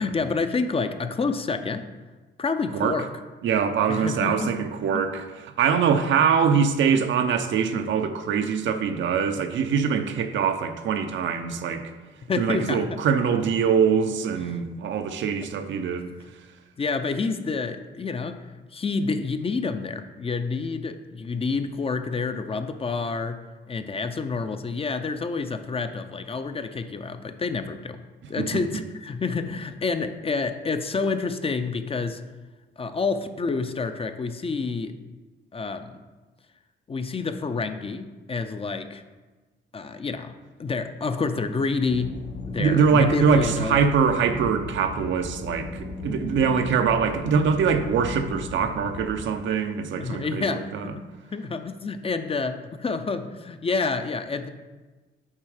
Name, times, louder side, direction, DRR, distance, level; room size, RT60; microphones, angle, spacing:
voice 1, 0.0-1.9 2.4-3.1 3.9-4.5 4.9-5.0 12.3-13.0 14.5-14.6 16.8-18.4 18.7-23.4 23.7-28.0 28.3-32.2 32.8-34.9 35.5-36.0 36.9-39.0 39.7-40.3 40.6-42.1 42.4-43.8 50.0-51.0 51.3-54.5, left 4 dB, 30° left, 9 dB, 0.6 m, -28 dB
voice 2, 3.4-5.2 5.6-11.8 12.4-16.1 28.4-28.5 42.6-50.9, right 6 dB, 70° right, 8 dB, 0.7 m, -23 dB
sound 1, 41.9-49.3, left 3 dB, 65° left, 0.9 m, -37 dB
7.4 x 4.6 x 4.9 m, 1.3 s
cardioid pair, 90°, 20 cm